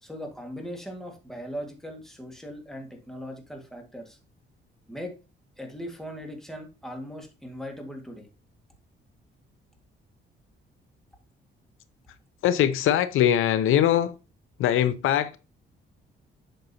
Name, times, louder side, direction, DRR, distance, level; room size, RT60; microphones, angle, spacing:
voice 1, 0.0-4.2 4.9-5.1 5.6-8.3, equal, ahead, 1.8 m, -39 dB
voice 2, 12.4-14.2 14.6-15.4, left 11 dB, 85° left, 0.6 m, -22 dB
7.9 x 6.0 x 2.8 m
cardioid pair, 125°, 20 cm